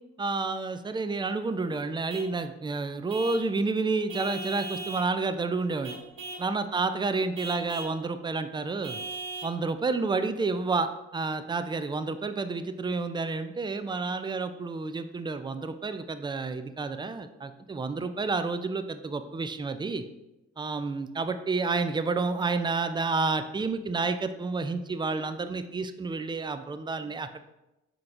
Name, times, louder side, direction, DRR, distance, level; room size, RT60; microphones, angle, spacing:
voice 1, 0.2-6.0 6.4-9.0 9.4-20.0 20.6-27.4, right 3 dB, 15° right, 10 dB, 0.3 m, -30 dB
Vehicle horn car horn honking / Truck, 2.1-2.4 3.1-3.5 4.1-5.1 5.8-6.5 7.3-8.0 8.8-9.6, right 2 dB, 85° right, 0.8 m, -38 dB
4.4 x 3.8 x 2.5 m, 0.96 s
hypercardioid pair, 45°, 30 cm